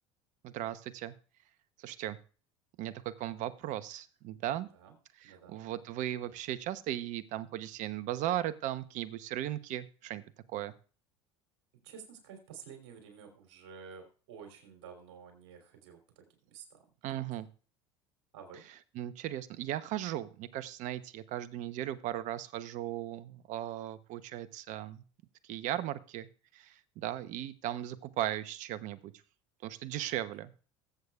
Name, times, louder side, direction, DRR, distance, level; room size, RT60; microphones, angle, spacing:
voice 1, 0.4-1.1 1.8-2.2 2.8-4.7 5.2-10.2 10.5-10.7 17.0-17.5 18.9-25.0 25.4-26.3 26.5-29.1 29.6-30.5, right 13 dB, 55° right, 14 dB, 0.9 m, -37 dB
voice 2, 5.2-5.6 11.8-16.2 16.5-16.8 17.1-17.2 18.3-18.6 29.9-30.1, right 6 dB, 75° right, 3 dB, 3.3 m, -51 dB
20.5 x 8.1 x 2.4 m, 0.38 s
hypercardioid pair, 80°, 15 cm